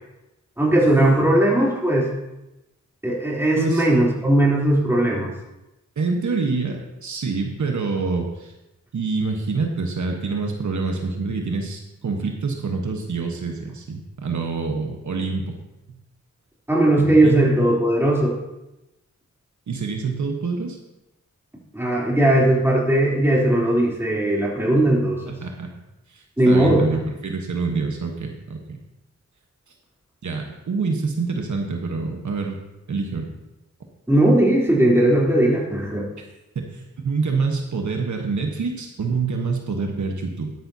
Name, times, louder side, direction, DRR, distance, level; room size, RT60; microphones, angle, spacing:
voice 1, 0.6-2.1 3.0-5.3 16.7-18.3 21.7-25.3 26.4-26.8 34.1-36.1, right 1 dB, 10° right, -5 dB, 3.4 m, -18 dB
voice 2, 3.6-3.9 6.0-8.5 8.9-15.6 15.9-16.0 17.0-17.5 19.7-20.8 25.3-25.7 26.1-28.8 30.2-32.6 32.9-33.3 36.2-36.3 36.7-40.5, right 4 dB, 75° right, 2 dB, 1.3 m, -26 dB
12.0 x 11.0 x 2.8 m, 0.96 s
wide cardioid pair, 65°, 30 cm